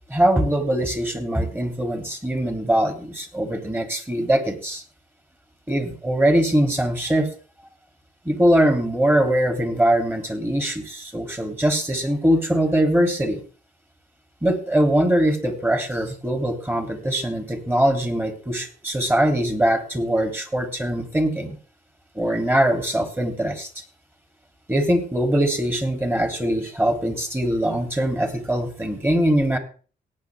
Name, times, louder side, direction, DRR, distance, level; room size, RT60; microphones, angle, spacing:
voice 1, 0.1-4.8 5.7-7.3 8.2-13.4 14.4-21.6 22.1-23.7 24.7-29.6, right 1 dB, 10° right, 5 dB, 3.2 m, -22 dB
18.5 x 8.8 x 3.6 m, 0.39 s
cardioid pair, 90°, 20 cm